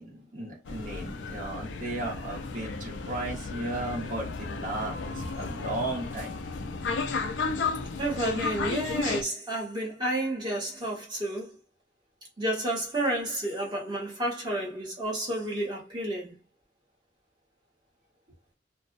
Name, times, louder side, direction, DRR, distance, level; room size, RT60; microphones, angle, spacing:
voice 1, 0.0-6.4, right 2 dB, 45° right, 1.1 m, -35 dB
sound 1, 0.7-9.2, left 4 dB, 80° left, 0.4 m, -33 dB
voice 2, 8.0-11.6 12.4-16.4, right 1 dB, 25° right, 1.1 m, -31 dB
2.4 x 2.0 x 2.6 m
head